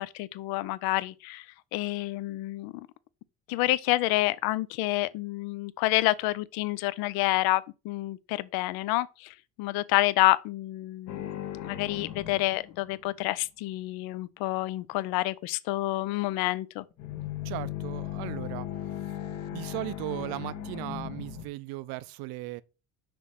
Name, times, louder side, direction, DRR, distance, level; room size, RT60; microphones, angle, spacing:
voice 1, 0.0-1.5 1.7-2.7 3.5-16.8, left 18 dB, 80° left, 0.5 m, -28 dB
sound 1, 11.1-13.3 16.9-21.5, left 12 dB, 50° left, 0.9 m, -37 dB
voice 2, 17.4-18.7 18.9-19.2 19.5-22.6, right 18 dB, 85° right, 0.5 m, -37 dB
6.0 x 3.1 x 5.5 m
cardioid pair, 160°, 36 cm